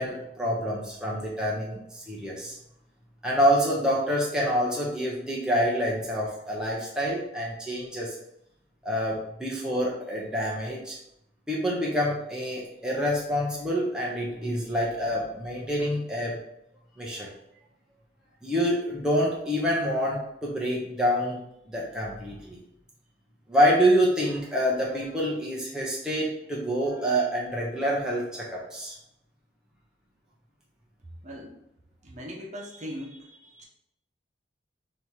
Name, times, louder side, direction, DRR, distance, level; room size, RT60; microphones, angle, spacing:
voice 1, 0.0-2.5 3.2-8.1 8.8-11.0 11.5-16.4 17.0-17.3 18.4-21.4 21.7-22.6 23.5-29.0, equal, 5° right, -5 dB, 0.7 m, -27 dB
voice 2, 31.0-31.5 32.0-33.7, equal, 40° right, -2 dB, 0.9 m, -40 dB
3.5 x 2.8 x 4.4 m, 0.78 s
head